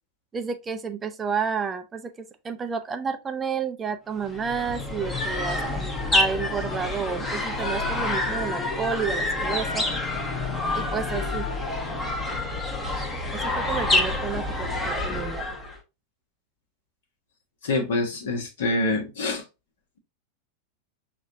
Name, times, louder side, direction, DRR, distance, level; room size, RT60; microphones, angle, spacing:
voice 1, 0.3-2.1 2.4-9.8 10.7-11.5 13.3-15.4, right 6 dB, 20° right, 0.5 m, -30 dB
sound 1, 4.2-15.8, left 2 dB, 15° left, 0.9 m, -27 dB
voice 2, 17.6-19.4, left 2 dB, 60° left, 1.2 m, -26 dB
6.2 x 2.4 x 2.7 m
figure-of-eight pair, 90°, 0 cm